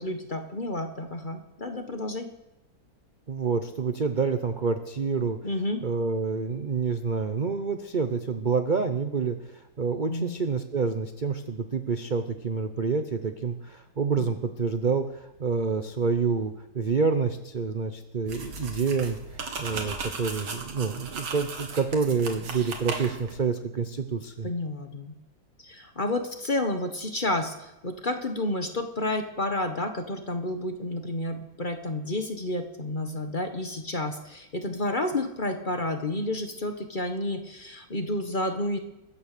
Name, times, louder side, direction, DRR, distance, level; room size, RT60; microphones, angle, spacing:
voice 1, 0.0-2.3 5.4-5.8 10.1-10.4 14.1-14.3 24.4-25.1 25.6-38.8, left 1 dB, 30° left, 6 dB, 1.1 m, -30 dB
voice 2, 3.3-5.4 5.8-19.2 19.6-24.5, right 5 dB, 60° right, 8 dB, 0.5 m, -28 dB
sound 1, 18.3-23.4, right 4 dB, 85° right, 2.6 m, -37 dB
23.0 x 8.7 x 6.7 m, 0.94 s
omnidirectional pair, 2.1 m